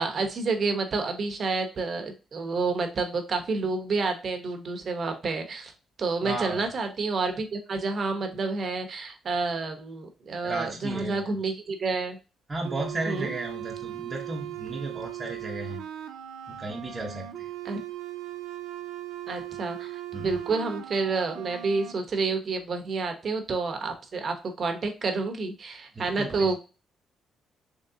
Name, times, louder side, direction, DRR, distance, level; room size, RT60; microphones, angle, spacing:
voice 1, 0.0-5.7 6.0-12.2 13.0-13.3 17.6-17.8 19.3-26.6, right 4 dB, 50° right, 5 dB, 1.0 m, -29 dB
voice 2, 6.2-6.6 10.4-11.2 12.5-15.8 16.5-17.5 20.1-20.4 26.0-26.6, right 2 dB, 25° right, -2 dB, 0.8 m, -34 dB
sound 1, 12.6-21.9, right 13 dB, 85° right, 0.4 m, -38 dB
3.8 x 3.1 x 2.7 m, 0.31 s
cardioid pair, 90°, 0 cm